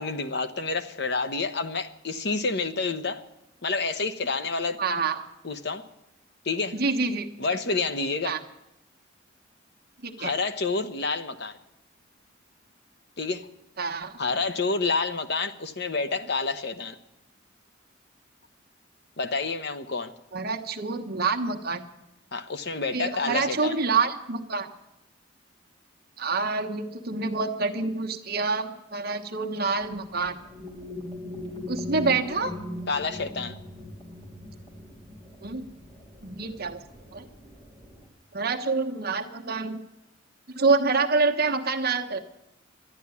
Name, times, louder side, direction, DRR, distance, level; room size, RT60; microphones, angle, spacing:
voice 1, 0.0-3.2 3.6-4.8 5.4-5.9 6.4-6.8 7.4-8.4 10.2-11.6 13.2-13.5 14.2-17.0 19.2-20.1 22.3-23.8 32.9-33.5, left 4 dB, 55° left, 9 dB, 0.9 m, -28 dB
voice 2, 4.8-5.2 6.7-7.3 8.2-8.4 10.0-10.3 13.8-14.1 20.3-21.8 22.9-24.7 26.2-30.4 31.7-32.5 35.4-35.7 36.2-36.8 37.1-37.2 38.3-39.8 40.5-42.2, right 4 dB, 50° right, 4 dB, 1.1 m, -27 dB
sound 1, 29.8-38.1, left 1 dB, 25° left, 3.0 m, -40 dB
12.5 x 10.5 x 9.6 m, 0.90 s
head